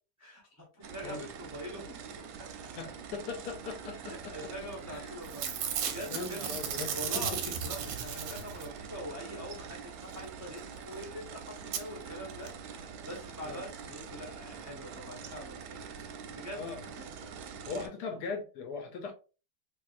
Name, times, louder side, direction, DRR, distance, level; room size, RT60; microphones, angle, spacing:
voice 1, 0.2-2.2 3.9-6.4 6.9-15.8 16.2-17.4, equal, 25° right, 0.3 m, -44 dB
sound 1, 0.8-17.9, right 6 dB, 75° right, 1.1 m, -45 dB
voice 2, 2.8-4.5 4.9-5.1 6.1-7.7 13.4-13.6 16.5-16.8 17.7-19.1, left 4 dB, 70° left, 1.0 m, -40 dB
Packing tape duct tape / Tearing, 4.7-5.0 5.2-8.8 10.8-10.9 11.0-11.1 11.7-11.8 12.5-12.6 12.8-12.9, right 8 dB, 90° right, 1.3 m, -35 dB
3.4 x 2.7 x 2.4 m
omnidirectional pair, 2.0 m